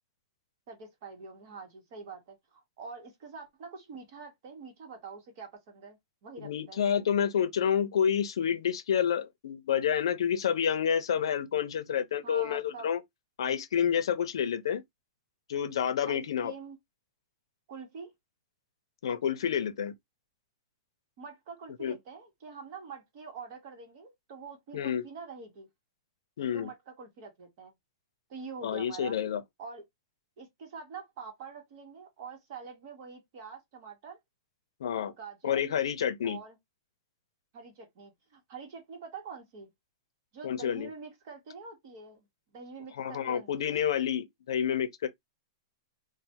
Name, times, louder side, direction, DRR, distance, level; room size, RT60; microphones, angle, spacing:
voice 1, 0.7-7.0 12.2-12.9 16.1-16.8 17.7-18.1 21.2-25.7 26.5-27.7 28.3-29.2 29.6-29.8 30.4-34.2 35.2-35.7 36.2-36.6 37.5-39.7 40.3-42.3 42.5-43.8, right 5 dB, 35° right, 0.9 m, -45 dB
voice 2, 6.4-13.0 13.4-14.8 15.5-16.5 19.0-19.9 21.8-22.0 24.7-25.0 26.4-26.7 28.6-29.4 34.8-35.1 35.4-36.4 40.4-40.9 43.0-45.1, left 8 dB, 75° left, 0.6 m, -29 dB
3.2 x 2.1 x 2.8 m
supercardioid pair, 175°, 3 cm